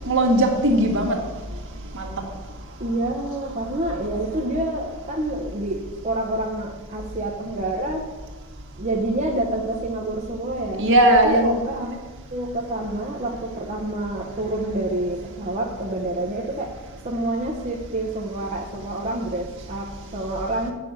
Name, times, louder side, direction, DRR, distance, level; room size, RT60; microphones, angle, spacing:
voice 1, 0.1-1.1 1.9-2.1 10.8-11.9, right 1 dB, 60° right, 0 dB, 1.9 m, -18 dB
voice 2, 2.8-8.1 8.8-10.9 11.1-12.0 12.3-16.7 17.0-20.7, right 1 dB, 35° right, -2 dB, 1.0 m, -28 dB
8.5 x 6.8 x 7.4 m, 1.3 s
head